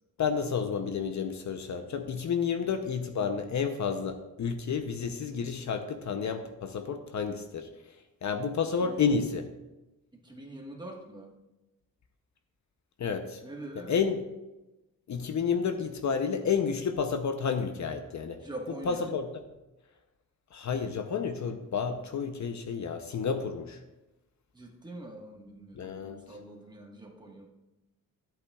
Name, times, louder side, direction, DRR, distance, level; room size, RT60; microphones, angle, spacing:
voice 1, 0.2-7.7 8.2-9.5 13.0-13.4 13.8-14.2 15.1-18.4 18.9-19.4 20.5-23.8 25.7-26.2, left 6 dB, 55° left, 7 dB, 0.7 m, -30 dB
voice 2, 8.8-9.2 10.1-11.3 13.4-13.9 18.4-19.1 24.5-25.9 26.3-27.5, right 1 dB, 10° right, -1 dB, 1.4 m, -44 dB
13.5 x 8.3 x 2.3 m, 1.0 s
wide cardioid pair, 150°, 34 cm